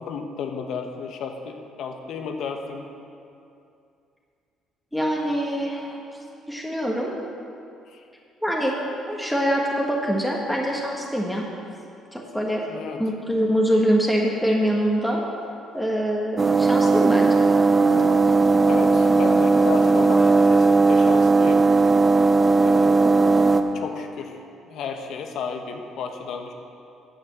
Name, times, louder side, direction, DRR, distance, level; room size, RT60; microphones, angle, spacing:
voice 1, 0.0-2.8 7.9-8.0 12.6-13.0 18.7-21.6 22.6-24.4 24.7-26.5, left 5 dB, 70° left, 5 dB, 1.1 m, -33 dB
voice 2, 4.9-6.0 6.5-7.1 8.4-8.7 9.1-11.5 12.1-12.6 13.0-15.2 15.7-17.4, equal, ahead, -2 dB, 1.4 m, -24 dB
sound 1, 16.4-23.6, right 3 dB, 25° right, 0.6 m, -17 dB
9.3 x 6.6 x 7.4 m, 2.6 s
cardioid pair, 85°, 0 cm